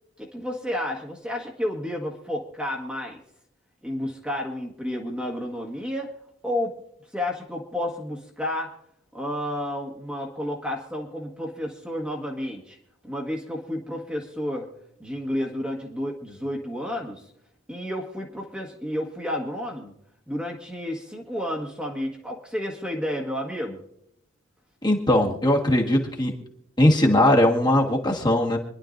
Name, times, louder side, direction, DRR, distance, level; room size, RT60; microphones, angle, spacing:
voice 1, 0.2-3.2 3.8-6.1 6.4-6.8 7.1-8.7 9.1-12.8 13.0-14.7 15.0-17.3 17.7-19.9 20.3-23.8, left 1 dB, 5° right, 0 dB, 1.4 m, -31 dB
voice 2, 24.8-26.3 26.8-28.6, left 1 dB, 20° left, -1 dB, 1.5 m, -20 dB
27.0 x 11.0 x 2.6 m, 0.75 s
head